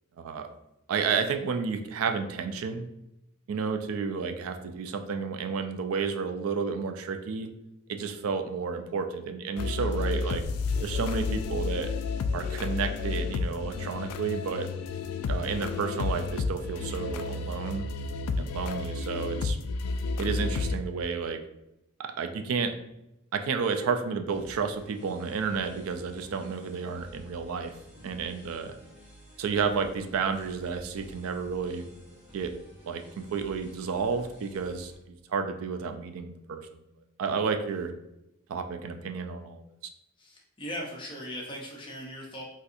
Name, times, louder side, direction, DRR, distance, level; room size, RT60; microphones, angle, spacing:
voice 1, 0.2-0.5 0.9-2.9 3.5-7.5 7.9-10.4 10.8-11.9 12.3-14.7 15.3-17.9 18.4-19.6 20.2-21.4 22.2-22.7 23.3-27.7 28.0-28.8 29.4-31.9 32.3-32.5 32.9-36.8 37.2-37.9 38.5-39.6, right 5 dB, 70° right, 6 dB, 0.3 m, -31 dB
sound 1, 9.6-20.8, left 4 dB, 90° left, 0.3 m, -31 dB
sound 2, 24.3-34.9, equal, 10° right, 0.9 m, -52 dB
voice 2, 40.2-42.4, equal, 20° left, -2 dB, 0.6 m, -39 dB
4.0 x 2.6 x 2.5 m, 0.89 s
head